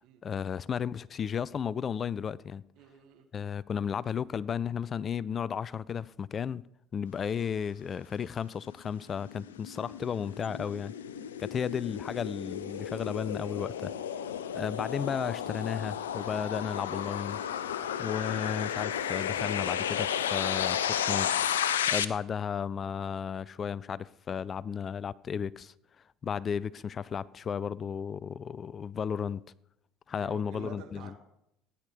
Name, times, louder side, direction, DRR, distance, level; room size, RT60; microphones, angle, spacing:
voice 1, 0.2-2.6 3.3-6.6 6.9-10.9 11.4-13.9 14.5-17.4 18.0-21.3 21.9-25.7 26.2-29.4 30.1-31.1, left 7 dB, 35° left, 0.5 m, -34 dB
voice 2, 2.8-3.3 17.8-18.1 30.2-31.2, right 8 dB, 60° right, 2.6 m, -49 dB
sound 1, 8.9-22.1, left 9 dB, 80° left, 0.7 m, -33 dB
17.5 x 10.0 x 5.2 m
hypercardioid pair, 65°, 0 cm